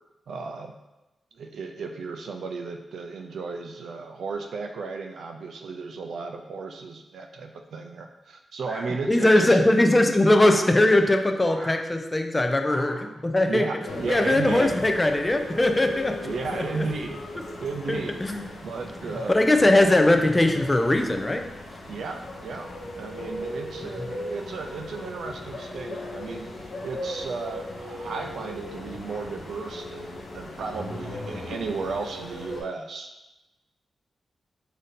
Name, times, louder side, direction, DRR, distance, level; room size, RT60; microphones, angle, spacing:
voice 1, 0.3-0.7 1.3-9.6 13.4-14.8 16.2-17.2 17.6-18.2 18.6-19.9 21.9-22.7 23.0-26.4 26.8-33.1, right 4 dB, 75° right, 4 dB, 0.3 m, -34 dB
sound 1, 8.6-9.4 10.3-10.7 11.4-11.8 12.6-13.1, right 1 dB, 25° right, 0.7 m, -40 dB
voice 2, 9.1-13.7 14.1-16.2 16.5-16.9 17.9-18.4 19.3-21.5, left 1 dB, 15° left, 5 dB, 0.3 m, -20 dB
sound 2, 13.8-32.6, left 1 dB, 85° left, 0.9 m, -37 dB
3.9 x 2.6 x 3.5 m, 1.0 s
wide cardioid pair, 130°, 0 cm